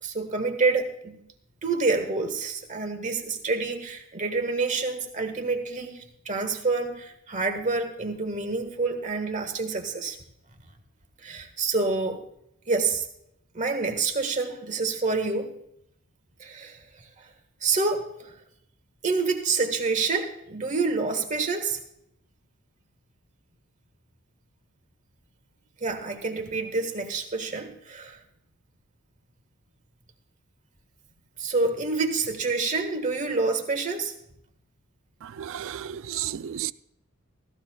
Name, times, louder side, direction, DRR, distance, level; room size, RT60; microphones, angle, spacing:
voice 1, 0.0-1.2 1.6-10.2 11.2-12.2 12.7-13.0 13.5-15.5 16.4-17.3 17.6-18.3 19.0-21.8 25.8-28.2 31.4-34.1, right 4 dB, 35° right, 1.5 m, -27 dB
voice 2, 35.4-36.7, right 11 dB, 65° right, 0.4 m, -32 dB
17.0 x 14.5 x 2.3 m
head